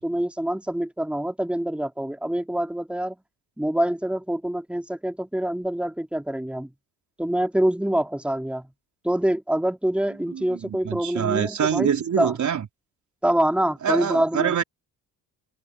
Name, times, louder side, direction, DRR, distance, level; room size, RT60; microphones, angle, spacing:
voice 1, 0.0-3.2 3.6-6.7 7.2-8.7 9.0-11.9 12.2-12.4 13.2-14.5, right 1 dB, 5° right, 3.5 m, -25 dB
voice 2, 10.3-12.7 13.8-14.6, right 8 dB, 50° right, 4.2 m, -25 dB
supercardioid pair, 75°, 38 cm